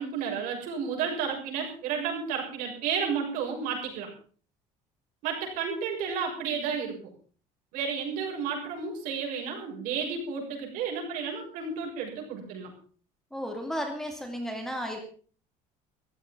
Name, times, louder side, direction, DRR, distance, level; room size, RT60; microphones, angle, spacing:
voice 1, 0.0-4.1 5.2-7.0 7.7-12.7, right 6 dB, 65° right, 1 dB, 6.8 m, -32 dB
voice 2, 13.3-15.0, equal, 5° left, 3 dB, 2.4 m, -33 dB
15.0 x 13.5 x 5.3 m, 0.42 s
cardioid pair, 160°, 15 cm